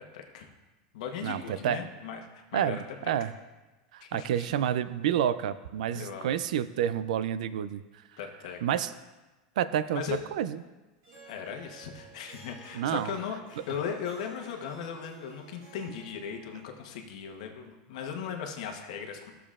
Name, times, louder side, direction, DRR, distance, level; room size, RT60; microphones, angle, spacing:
voice 1, 0.1-0.5 0.9-2.2 2.5-2.8 4.0-4.5 5.9-6.3 8.2-8.6 9.9-10.2 11.2-19.3, left 7 dB, 65° left, 3 dB, 1.0 m, -37 dB
voice 2, 1.2-1.8 2.5-3.3 3.9-7.8 8.6-8.9 9.6-10.0 10.3-10.6 12.7-13.1, right 10 dB, 90° right, 14 dB, 0.4 m, -29 dB
Harp, 11.0-16.8, right 2 dB, 45° right, 2.2 m, -53 dB
12.5 x 6.8 x 2.4 m, 1.2 s
supercardioid pair, 180°, 4 cm